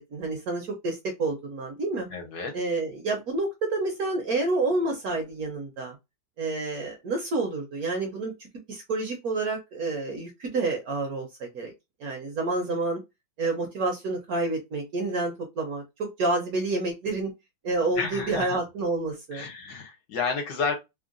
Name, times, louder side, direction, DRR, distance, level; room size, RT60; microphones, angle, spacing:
voice 1, 0.1-2.1 2.5-6.0 6.4-8.3 8.7-11.7 12.0-13.0 13.4-17.3 17.6-19.5, right 2 dB, 65° right, 1.0 m, -29 dB
voice 2, 2.1-2.5 18.0-18.6 19.3-20.7, left 5 dB, 65° left, 1.5 m, -31 dB
3.6 x 2.1 x 2.5 m
omnidirectional pair, 2.1 m